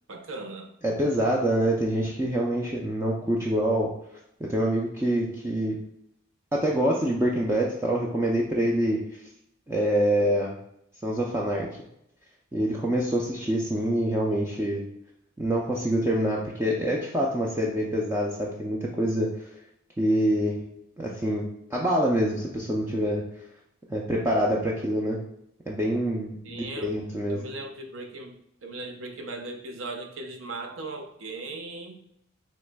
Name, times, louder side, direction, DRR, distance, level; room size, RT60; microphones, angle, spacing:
voice 1, 0.1-0.7 26.4-27.0 27.3-28.3 28.6-32.0, right 2 dB, 70° right, 3 dB, 0.7 m, -38 dB
voice 2, 0.8-3.9 4.4-5.8 6.5-9.0 9.7-10.5 11.0-11.7 12.5-14.8 15.4-19.5 20.0-20.7 21.0-21.4 21.7-23.2 23.9-25.2 25.7-27.4, right 1 dB, 10° right, -3 dB, 0.4 m, -25 dB
5.9 x 3.1 x 2.2 m, 0.77 s
head